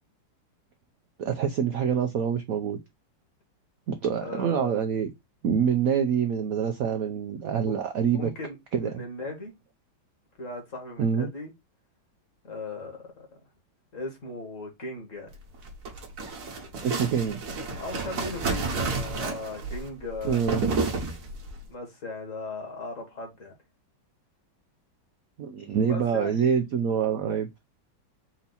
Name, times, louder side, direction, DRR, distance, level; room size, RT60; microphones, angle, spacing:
voice 1, 1.2-2.8 3.9-5.1 5.4-8.3 8.7-8.9 11.0-11.3 16.8-17.4 20.2-20.6 25.4-27.5, right 7 dB, 75° right, 0.8 m, -26 dB
voice 2, 4.2-4.8 7.6-7.8 8.1-9.5 10.4-11.5 12.4-13.3 13.9-15.3 17.8-20.4 21.7-23.5 25.8-26.4, left 2 dB, 45° left, 1.8 m, -37 dB
sound 1, 15.5-21.6, right 3 dB, 55° right, 1.6 m, -31 dB
4.5 x 2.9 x 4.0 m
omnidirectional pair, 2.1 m